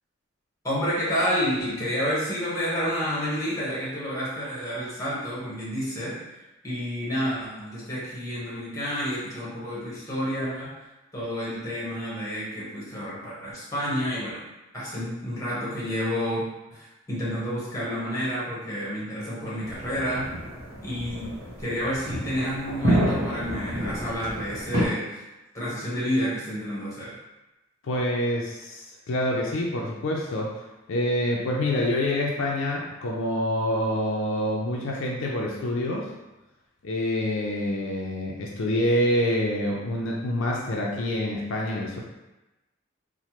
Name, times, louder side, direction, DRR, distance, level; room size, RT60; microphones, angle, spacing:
voice 1, 0.6-6.2 6.6-10.7 11.1-14.4 14.7-16.5 16.7-20.3 20.8-21.3 21.6-25.2 25.5-27.2, equal, 15° left, -8 dB, 0.9 m, -29 dB
sound 1, 19.6-24.8, right 1 dB, 50° right, 0.8 m, -29 dB
voice 2, 27.8-30.6 30.9-36.1 36.8-42.0, left 1 dB, 70° left, -2 dB, 0.4 m, -26 dB
3.1 x 2.1 x 2.9 m, 1.0 s
head